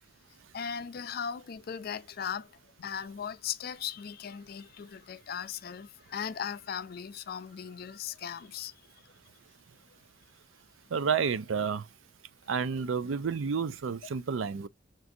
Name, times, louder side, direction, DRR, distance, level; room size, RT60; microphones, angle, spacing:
voice 1, 0.5-2.5 2.8-8.7, left 7 dB, 50° left, 0.3 m, -38 dB
voice 2, 10.9-11.9 12.5-14.7, right 6 dB, 90° right, 0.5 m, -30 dB
6.0 x 2.5 x 2.6 m
head